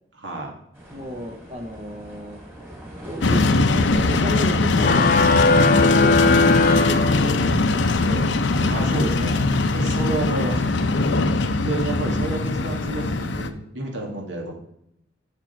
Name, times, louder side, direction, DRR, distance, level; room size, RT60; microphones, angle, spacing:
voice 1, 0.2-0.6 8.7-9.4 9.7-10.8 11.6-14.5, right 2 dB, 80° right, 0 dB, 2.2 m, -29 dB
sound 1, 0.7-8.2, equal, 10° right, 2.0 m, -42 dB
voice 2, 0.9-2.4 3.0-3.4 3.7-9.1, equal, 35° right, 3 dB, 0.7 m, -34 dB
sound 2, 3.2-13.5, left 3 dB, 80° left, 0.6 m, -21 dB
sound 3, 4.8-7.7, left 3 dB, 50° left, 0.6 m, -19 dB
7.6 x 6.5 x 4.5 m, 0.74 s
head